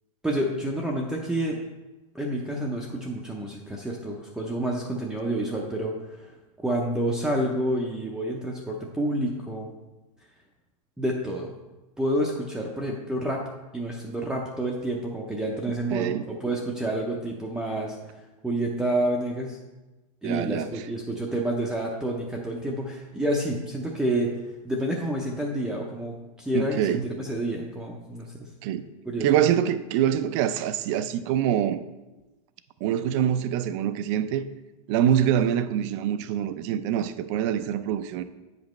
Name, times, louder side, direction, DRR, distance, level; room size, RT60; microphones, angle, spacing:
voice 1, 0.2-1.6 2.1-6.3 6.6-9.7 11.0-11.5 12.0-13.4 13.7-18.0 18.4-19.6 20.2-24.3 24.6-28.4 29.0-29.3, right 1 dB, 5° right, 0.6 m, -29 dB
voice 2, 15.9-16.2 20.2-20.7 26.5-27.0 28.6-28.8 29.2-31.8 32.8-34.5 34.9-38.2, right 10 dB, 50° right, 0.5 m, -25 dB
8.3 x 5.1 x 3.1 m
supercardioid pair, 135°, 19 cm